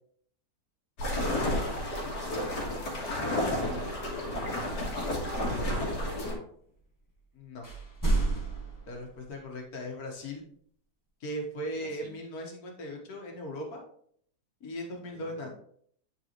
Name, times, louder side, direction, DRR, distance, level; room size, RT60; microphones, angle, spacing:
sound 1, 1.0-6.3, left 1 dB, 85° left, 2.1 m, -31 dB
voice 1, 2.2-2.6 5.4-6.1 11.7-12.1 15.1-15.5, right 2 dB, 85° right, 0 dB, 1.9 m, -47 dB
sound 2, 6.5-6.8 7.1-7.2 7.5-9.4, right 2 dB, 15° left, 0.8 m, -32 dB
voice 2, 7.3-7.7 8.9-10.4 11.2-13.8 14.6-15.5, equal, 65° left, 1 dB, 1.7 m, -38 dB
10.0 x 3.7 x 3.0 m, 0.63 s
omnidirectional pair, 1.7 m